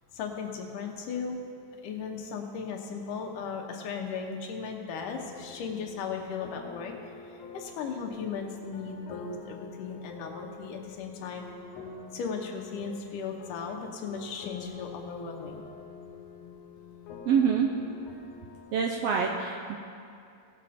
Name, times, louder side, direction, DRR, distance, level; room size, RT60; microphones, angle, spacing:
voice 1, 0.1-1.4 1.8-11.5 12.1-15.7, left 5 dB, 85° left, 2 dB, 2.6 m, -37 dB
sound 1, 5.0-18.9, left 5 dB, 65° left, 2.0 m, -46 dB
voice 2, 17.2-17.7 18.7-19.8, right 6 dB, 80° right, 1 dB, 1.5 m, -25 dB
18.5 x 6.6 x 4.2 m, 2.4 s
omnidirectional pair, 3.6 m